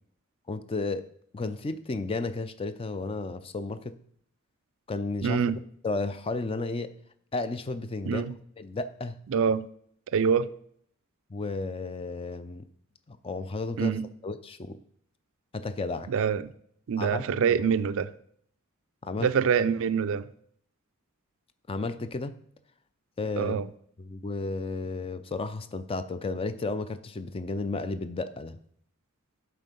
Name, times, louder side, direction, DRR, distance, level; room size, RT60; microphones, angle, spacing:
voice 1, 0.5-1.0 1.3-4.0 4.9-5.4 5.8-6.9 7.3-8.2 8.6-9.2 11.3-12.7 13.1-14.8 15.5-16.1 17.0-17.6 19.0-19.3 21.7-22.4 23.2-23.6 24.0-28.6, left 3 dB, 25° left, 0.4 m, -33 dB
voice 2, 5.2-5.6 8.1-8.4 9.3-9.7 10.1-10.5 13.8-14.1 16.1-16.5 16.9-18.1 19.2-20.3 23.4-23.7, right 7 dB, 65° right, 0.4 m, -25 dB
7.7 x 4.6 x 5.2 m
head